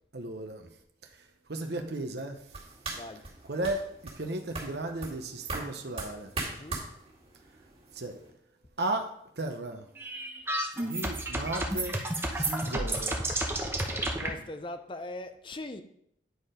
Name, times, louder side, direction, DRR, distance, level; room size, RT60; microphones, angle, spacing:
voice 1, 0.1-0.7 1.1-2.6 3.4-6.3 7.9-8.2 8.8-9.9 10.8-12.0 12.3-13.2, right 2 dB, 65° right, 0.8 m, -35 dB
sound 1, 2.5-8.3, right 3 dB, 35° right, 2.1 m, -41 dB
voice 2, 2.9-3.3 6.5-6.8 13.9-15.8, left 2 dB, 30° left, 0.6 m, -41 dB
sound 2, 10.0-14.3, right 1 dB, 15° right, 1.0 m, -31 dB
9.5 x 4.4 x 5.1 m
head